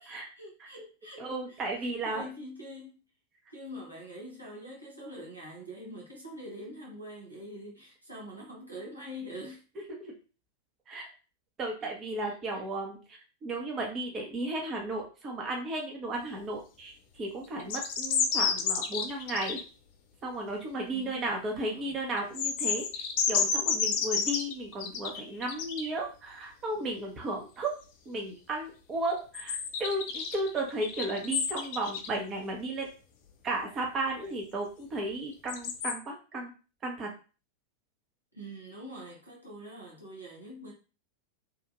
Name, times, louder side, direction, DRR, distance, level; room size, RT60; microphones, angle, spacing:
voice 1, 0.0-3.0 3.5-9.6 11.8-11.9 12.2-12.6 20.9-22.1 38.3-40.7, equal, 85° right, 1.0 m, -45 dB
voice 2, 1.2-2.2 10.0-10.1 10.9-11.1 11.6-13.0 13.4-19.6 20.2-27.8 28.1-32.9 33.4-36.5 36.8-37.1, right 2 dB, 25° right, 0.8 m, -34 dB
sound 1, 17.6-19.6 22.2-25.9 29.3-32.1 35.5-35.9, left 6 dB, 50° left, 0.4 m, -30 dB
2.9 x 2.5 x 2.5 m
figure-of-eight pair, 90°, 0 cm